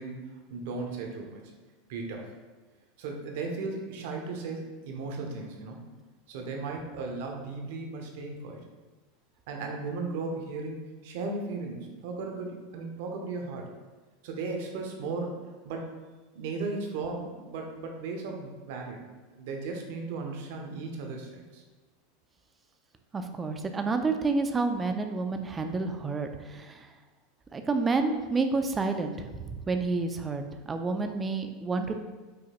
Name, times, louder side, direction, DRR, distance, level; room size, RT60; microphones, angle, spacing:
voice 1, 0.0-1.5 1.9-2.3 3.0-5.8 6.3-8.6 9.5-13.7 14.2-15.9 16.3-19.0 19.3-21.6, right 3 dB, 70° right, 2 dB, 0.7 m, -36 dB
voice 2, 23.1-26.8 27.5-30.4 30.7-32.0, right 3 dB, 20° right, 6 dB, 0.3 m, -29 dB
4.8 x 2.2 x 2.9 m, 1.3 s
supercardioid pair, 115°, 0 cm